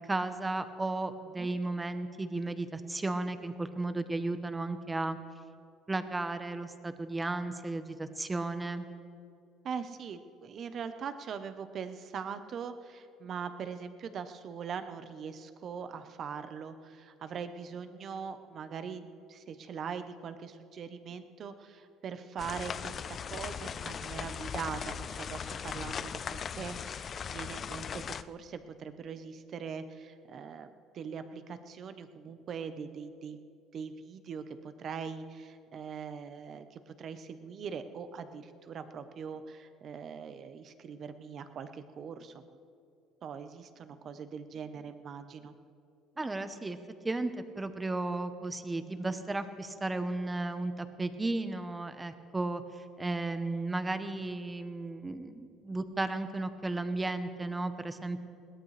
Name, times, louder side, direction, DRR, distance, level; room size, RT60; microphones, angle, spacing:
voice 1, 0.1-5.2 5.9-8.9 46.2-46.8 47.0-58.2, right 2 dB, 15° right, 10 dB, 0.9 m, -34 dB
voice 2, 9.6-19.0 19.3-33.4 33.7-42.6 43.2-45.5, right 6 dB, 45° right, 10 dB, 0.9 m, -41 dB
sound 1, 22.4-28.2, left 7 dB, 35° left, 0.4 m, -38 dB
21.5 x 17.0 x 3.3 m, 2.5 s
cardioid pair, 120°, 0 cm